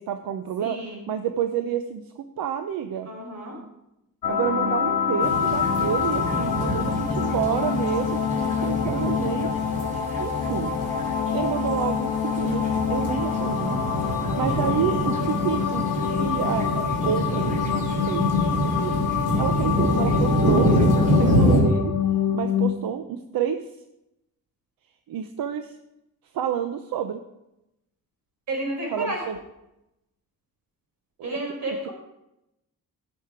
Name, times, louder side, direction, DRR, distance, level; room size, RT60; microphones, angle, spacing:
voice 1, 0.0-0.8 1.1-3.1 4.3-9.6 10.2-10.7 11.3-13.8 14.2-18.9 19.4-21.9 22.3-23.7 25.1-25.8 26.3-27.2 28.9-29.4 31.2-31.3, right 9 dB, 80° right, 7 dB, 0.8 m, -29 dB
voice 2, 0.6-1.0 3.1-3.6 28.5-29.3 31.2-31.9, right 1 dB, 50° right, 0 dB, 4.6 m, -31 dB
sound 1, 4.2-22.7, left 7 dB, 65° left, 1.4 m, -26 dB
sound 2, 5.2-21.6, equal, 25° right, 3.2 m, -26 dB
16.5 x 6.5 x 4.8 m, 0.88 s
wide cardioid pair, 175°, 34 cm